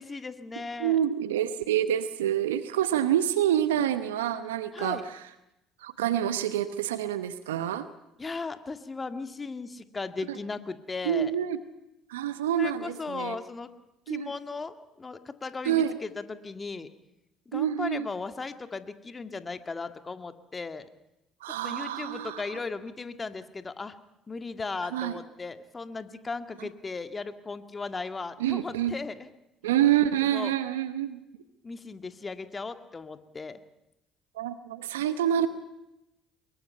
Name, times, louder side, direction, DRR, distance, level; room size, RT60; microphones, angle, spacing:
voice 1, 0.0-1.0 4.7-5.0 8.2-11.3 12.6-13.7 14.1-16.9 17.5-20.9 21.6-24.0 24.3-29.3 30.3-30.5 31.6-33.6, left 4 dB, 25° left, 9 dB, 2.0 m, -37 dB
voice 2, 0.8-5.2 5.8-7.9 10.3-10.4 11.0-11.6 12.1-13.4 14.1-14.3 15.6-15.9 17.5-18.1 21.4-22.4 24.9-25.2 28.4-29.0 29.6-31.2 34.4-35.5, right 11 dB, 85° right, 13 dB, 1.0 m, -27 dB
25.0 x 22.0 x 5.7 m, 0.90 s
hypercardioid pair, 60°, 0 cm